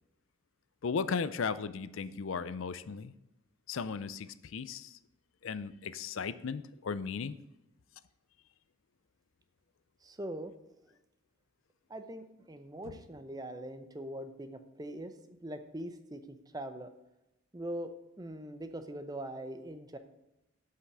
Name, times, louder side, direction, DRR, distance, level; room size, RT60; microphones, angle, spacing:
voice 1, 0.8-3.1 3.7-5.0 5.4-7.4, left 5 dB, 70° left, 15 dB, 0.5 m, -36 dB
voice 2, 10.0-10.9 11.9-16.9 17.5-17.9 18.2-20.0, right 1 dB, 20° right, 9 dB, 0.7 m, -42 dB
8.0 x 5.7 x 7.2 m, 0.93 s
head